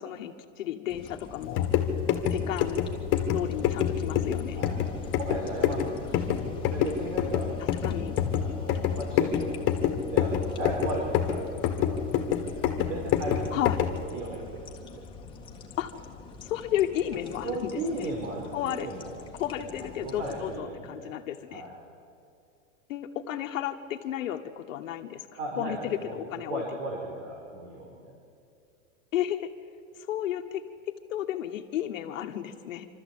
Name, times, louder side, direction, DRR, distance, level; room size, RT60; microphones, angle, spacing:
voice 1, 0.0-1.7 2.3-2.8 3.3-4.6 7.8-8.2 13.5-13.8 15.8-15.9 16.4-18.1 18.5-18.9 19.4-21.6 22.9-25.2 25.6-26.6 29.1-29.5 30.0-30.6 31.1-32.9, left 11 dB, 75° left, 4 dB, 1.4 m, -32 dB
sound 1, 0.9-20.6, left 4 dB, 15° left, 1.7 m, -45 dB
sound 2, 1.4-14.0, left 9 dB, 30° left, 1.9 m, -28 dB
voice 2, 5.1-7.5 8.4-9.6 10.1-13.6 14.1-15.0 17.4-19.2 19.6-21.2 21.5-21.7 25.4-28.1, right 2 dB, 60° right, 0 dB, 4.4 m, -36 dB
27.0 x 13.5 x 8.7 m, 2.5 s
supercardioid pair, 155°, 39 cm